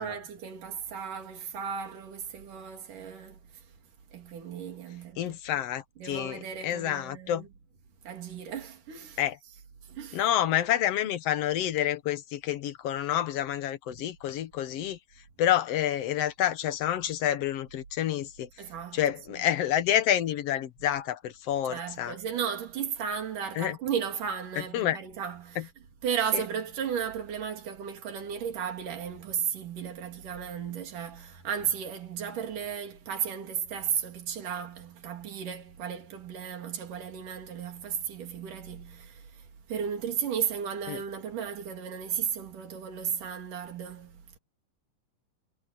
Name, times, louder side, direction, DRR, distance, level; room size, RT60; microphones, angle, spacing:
voice 1, 0.0-3.7 4.1-5.6 6.0-7.5 8.0-9.2 9.8-10.2 18.6-19.0 19.3-19.4 21.7-25.7 26.0-44.4, right 8 dB, 75° right, 4.8 m, -35 dB
voice 2, 5.2-7.5 9.2-9.4 10.1-15.0 15.4-18.5 18.9-22.1 23.6-23.8 24.7-25.0 40.9-41.0, left 11 dB, 60° left, 2.0 m, -28 dB
omnidirectional pair, 3.8 m